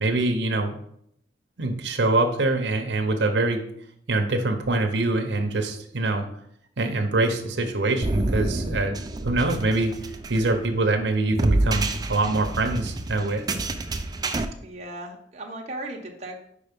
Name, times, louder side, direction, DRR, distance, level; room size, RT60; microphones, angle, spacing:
voice 1, 0.0-0.8 1.6-3.6 4.1-6.2 6.8-9.9 10.3-13.4, right 2 dB, 85° right, 4 dB, 0.8 m, -24 dB
sound 1, 8.0-14.4, right 2 dB, 20° right, 0.4 m, -28 dB
voice 2, 14.6-16.4, right 1 dB, 40° right, 0 dB, 0.9 m, -36 dB
5.0 x 4.6 x 5.2 m, 0.71 s
head